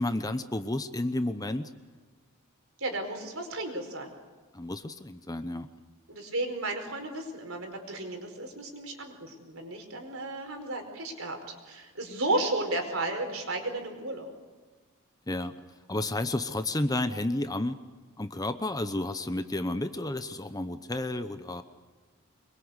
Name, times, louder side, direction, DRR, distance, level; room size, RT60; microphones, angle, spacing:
voice 1, 0.0-1.7 4.5-5.7 15.3-15.5 15.9-17.8 18.2-21.6, left 1 dB, 15° left, 10 dB, 0.9 m, -31 dB
voice 2, 2.8-4.1 6.1-14.3, right 2 dB, 65° right, 4 dB, 4.9 m, -33 dB
25.0 x 23.0 x 8.2 m, 1.3 s
head